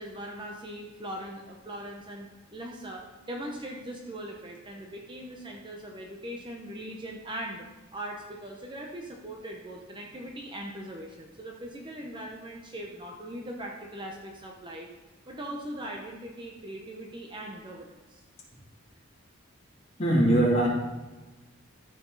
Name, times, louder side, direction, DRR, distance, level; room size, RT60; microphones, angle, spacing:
voice 1, 0.0-7.7 7.9-14.9 15.3-18.2, right 1 dB, 25° right, 0 dB, 0.8 m, -40 dB
voice 2, 20.0-20.7, right 1 dB, 30° left, -6 dB, 2.7 m, -21 dB
13.5 x 5.1 x 4.0 m, 1.2 s
head